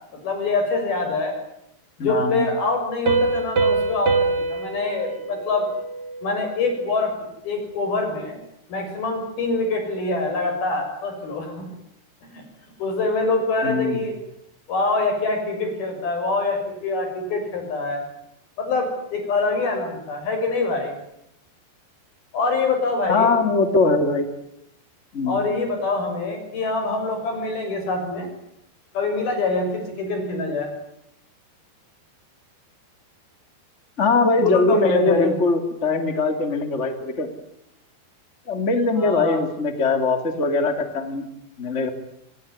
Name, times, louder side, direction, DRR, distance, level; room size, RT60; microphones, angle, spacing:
voice 1, 0.2-1.3 2.0-5.7 6.2-7.1 7.4-8.4 8.7-11.7 12.3-12.4 12.8-14.1 14.7-18.0 18.6-20.9 22.3-23.3 25.3-28.3 28.9-30.7 34.4-35.4 39.0-39.4, left 3 dB, 60° left, 5 dB, 8.4 m, -24 dB
voice 2, 2.0-2.5 13.6-14.0 23.1-24.3 25.1-25.4 34.0-37.3 38.5-41.2 41.6-41.9, left 3 dB, 25° left, 7 dB, 1.8 m, -21 dB
Piano, 3.1-6.5, right 4 dB, 40° right, 2.6 m, -24 dB
27.0 x 19.0 x 9.7 m, 0.79 s
omnidirectional pair, 4.9 m